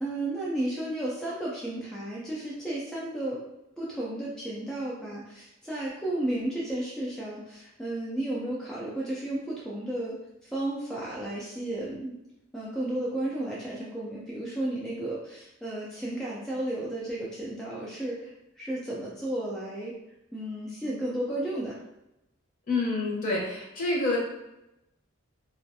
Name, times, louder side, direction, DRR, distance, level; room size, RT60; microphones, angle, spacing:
voice 1, 0.0-3.4 3.8-10.2 10.4-12.1 12.5-18.3 18.6-19.9 20.3-21.8, right 1 dB, 5° left, -7 dB, 0.3 m, -33 dB
voice 2, 22.7-24.2, left 2 dB, 40° left, -3 dB, 0.7 m, -27 dB
2.4 x 2.3 x 2.6 m, 0.89 s
head